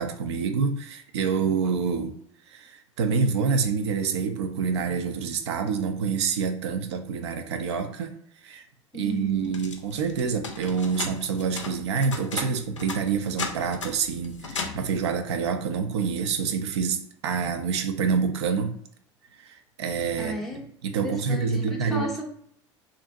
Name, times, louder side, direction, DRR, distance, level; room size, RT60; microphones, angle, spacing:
voice 1, 0.0-2.1 2.5-8.1 8.4-8.6 8.9-18.7 19.4-20.4 20.8-22.1, right 5 dB, 65° right, 7 dB, 0.4 m, -27 dB
voice 2, 8.9-9.5 20.2-20.7 20.9-22.2, equal, ahead, -2 dB, 0.6 m, -34 dB
sound 1, 9.4-14.9, left 4 dB, 80° left, 0.4 m, -36 dB
2.5 x 2.1 x 2.6 m, 0.67 s
figure-of-eight pair, 75°, 16 cm